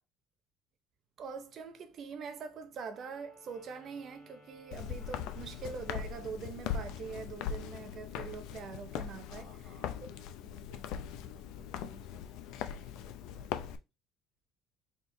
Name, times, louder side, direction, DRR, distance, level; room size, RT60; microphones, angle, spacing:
voice 1, 1.2-9.5, right 5 dB, 35° right, 0.6 m, -43 dB
Wind instrument woodwind instrument, 2.8-6.4, left 2 dB, 15° left, 2.5 m, -60 dB
Walk footsteps, 4.7-13.8, left 8 dB, 70° left, 0.5 m, -40 dB
voice 2, 9.1-13.8, left 1 dB, 50° left, 2.4 m, -59 dB
4.4 x 3.6 x 2.6 m
cardioid pair, 165°, 0 cm